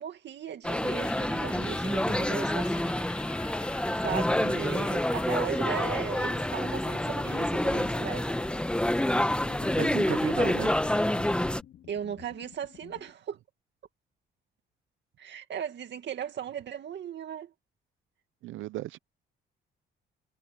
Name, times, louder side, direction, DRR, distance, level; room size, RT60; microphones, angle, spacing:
voice 1, 0.0-2.9 4.0-8.3 11.9-13.4 15.2-17.5, right 9 dB, 65° right, 2.2 m, -37 dB
sound 1, 0.6-11.6, left 1 dB, 5° left, 1.3 m, -28 dB
sound 2, 1.0-13.1, left 10 dB, 70° left, 2.5 m, -48 dB
voice 2, 9.8-10.7 18.4-19.0, right 15 dB, 80° right, 0.6 m, -35 dB
cardioid pair, 90°, 20 cm